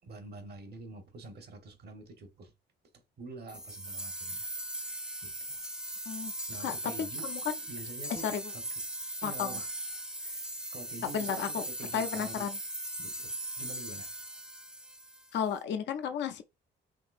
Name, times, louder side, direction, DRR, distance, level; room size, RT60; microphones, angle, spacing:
voice 1, 0.0-2.5 3.2-4.5 5.2-5.6 6.5-7.3 7.7-8.7 9.2-9.7 10.2-10.4 10.7-12.5 13.0-14.1, right 3 dB, 55° right, 1.0 m, -47 dB
sound 1, 3.5-15.5, right 1 dB, 5° right, 0.6 m, -39 dB
voice 2, 6.6-7.5 8.1-8.5 9.2-9.6 11.1-11.6 11.9-12.6 15.3-16.4, left 8 dB, 65° left, 0.5 m, -33 dB
3.7 x 2.7 x 2.4 m
cardioid pair, 90°, 20 cm